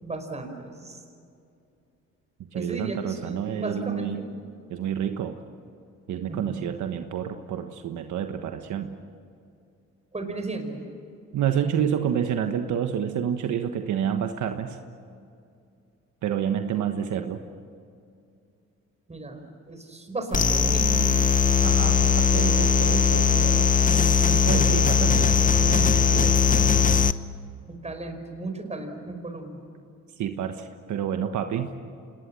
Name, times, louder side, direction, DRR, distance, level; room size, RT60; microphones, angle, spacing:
voice 1, 0.0-1.0 2.5-4.3 6.3-6.5 10.1-10.8 19.1-21.1 27.7-29.6, right 2 dB, 20° right, 5 dB, 5.0 m, -35 dB
voice 2, 2.5-4.2 4.7-5.3 6.1-9.0 11.3-14.8 16.2-17.4 21.6-23.7 24.2-26.4 30.2-31.7, right 9 dB, 75° right, 6 dB, 1.3 m, -29 dB
sound 1, 20.3-27.1, left 6 dB, 25° left, 0.8 m, -20 dB
27.0 x 20.0 x 7.6 m, 2.5 s
cardioid pair, 90°, 30 cm